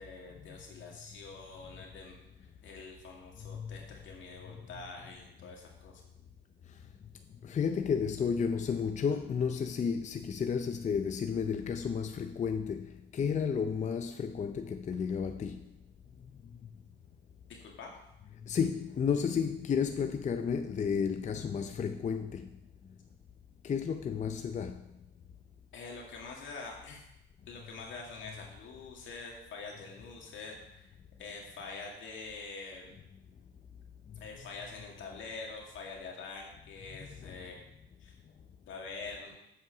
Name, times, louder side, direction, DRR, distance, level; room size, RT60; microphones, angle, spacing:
voice 1, 0.0-2.2 2.6-6.0 17.5-18.0 25.7-27.1 27.5-30.9 31.2-32.9 34.2-37.5 38.0-38.2 38.7-39.4, left 4 dB, 75° left, 2.2 m, -45 dB
voice 2, 3.4-3.8 7.4-15.6 18.4-22.5 23.6-24.8 37.2-37.4, left 6 dB, 35° left, 0.5 m, -32 dB
7.4 x 5.6 x 6.0 m
cardioid pair, 90°, 20 cm